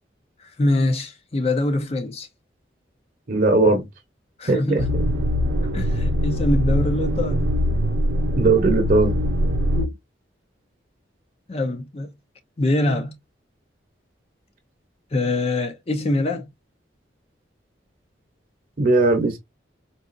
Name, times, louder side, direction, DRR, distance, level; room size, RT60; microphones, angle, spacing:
voice 1, 0.4-2.3 4.4-4.9 5.7-7.5 9.7-9.9 11.5-12.1 12.6-13.2 15.1-16.5, left 2 dB, 35° left, 0.5 m, -24 dB
voice 2, 3.3-3.9 4.5-4.8 8.3-9.1 18.8-19.4, right 2 dB, 50° right, 0.8 m, -18 dB
sound 1, 4.8-9.9, equal, 80° right, 0.6 m, -22 dB
3.9 x 2.4 x 2.5 m
head